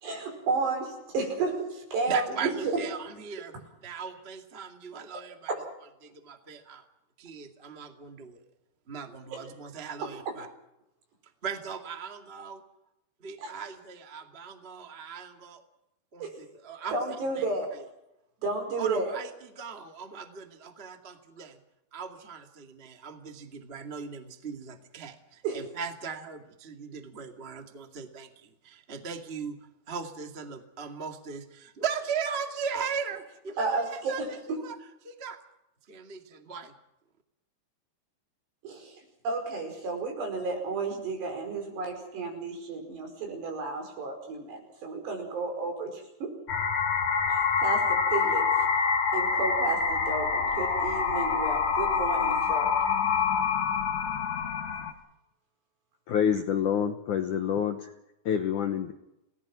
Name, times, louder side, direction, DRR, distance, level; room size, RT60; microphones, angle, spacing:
voice 1, 0.0-2.5 5.5-5.6 13.4-13.5 16.2-16.3 16.9-17.7 18.4-19.1 25.4-25.6 33.6-34.6 38.6-38.9 39.2-46.3 47.3-48.5 49.1-52.7, right 3 dB, 75° right, 3 dB, 7.3 m, -32 dB
voice 2, 2.1-3.5 3.8-5.5 6.0-6.8 7.2-8.4 8.9-10.5 11.4-12.6 13.2-15.6 16.1-17.0 17.3-17.4 17.7-17.8 18.8-21.6 21.9-29.6 29.9-34.7 35.0-35.4 35.9-36.7, right 6 dB, 25° right, 4 dB, 1.2 m, -38 dB
sound 1, 46.5-54.9, left 6 dB, 45° left, 2.5 m, -26 dB
voice 3, 56.1-57.8 58.3-58.9, left 8 dB, 70° left, 6 dB, 1.9 m, -27 dB
29.5 x 18.5 x 6.1 m, 0.87 s
omnidirectional pair, 4.9 m